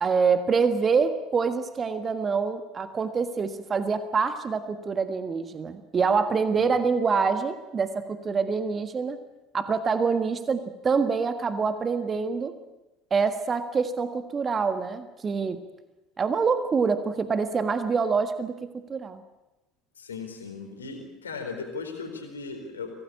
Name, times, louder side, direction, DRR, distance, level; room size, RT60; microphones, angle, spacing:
voice 1, 0.0-9.2 9.5-12.5 13.1-15.6 16.2-18.5 18.9-19.2, right 5 dB, 30° right, 10 dB, 1.6 m, -26 dB
voice 2, 20.0-22.9, left 4 dB, 80° left, 5 dB, 4.1 m, -37 dB
24.5 x 18.0 x 8.6 m, 1.0 s
figure-of-eight pair, 65°, 0 cm